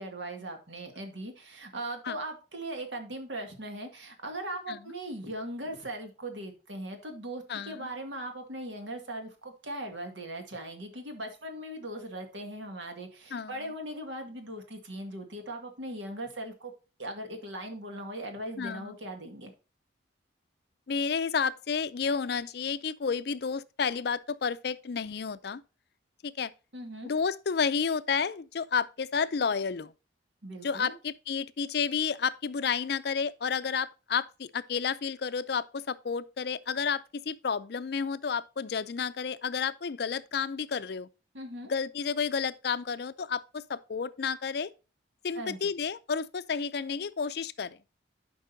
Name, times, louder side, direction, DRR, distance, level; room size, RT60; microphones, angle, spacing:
voice 1, 0.0-16.7 17.0-19.5 26.7-27.1 30.4-30.9 41.3-41.7 45.3-45.6, right 1 dB, 75° right, 2.0 m, -39 dB
voice 2, 7.5-7.9 13.3-13.6 18.6-19.0 20.9-25.6 26.2-26.5 27.0-29.9 30.6-41.1 41.7-44.7 45.2-47.8, left 6 dB, 55° left, 0.4 m, -31 dB
11.0 x 5.4 x 2.7 m
head